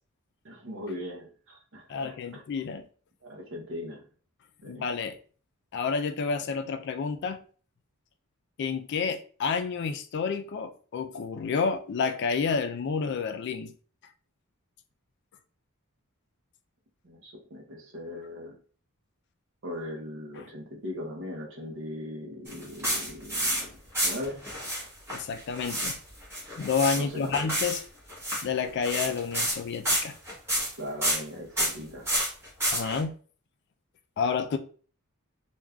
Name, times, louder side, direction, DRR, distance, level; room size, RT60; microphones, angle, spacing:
voice 1, 0.4-2.4 3.2-4.0 4.6-4.9 17.0-18.5 19.6-23.7 24.0-24.5 27.0-27.5 30.8-32.1, left 1 dB, 60° right, 0.8 m, -39 dB
voice 2, 1.9-2.8 4.6-5.2 5.7-7.4 8.6-13.7 20.4-20.5 25.1-26.0 26.6-27.8 28.4-30.2 32.7-33.1 34.2-34.6, left 5 dB, 50° left, 0.3 m, -30 dB
sound 1, 22.5-23.6 23.9-24.8 25.1-25.9 26.2-27.0 27.3-27.8 28.1-28.4 28.8-29.6 29.8-30.7 31.0-31.2 31.6-31.7 32.1-33.0, right 1 dB, 10° right, 1.0 m, -29 dB
3.4 x 2.4 x 2.2 m
head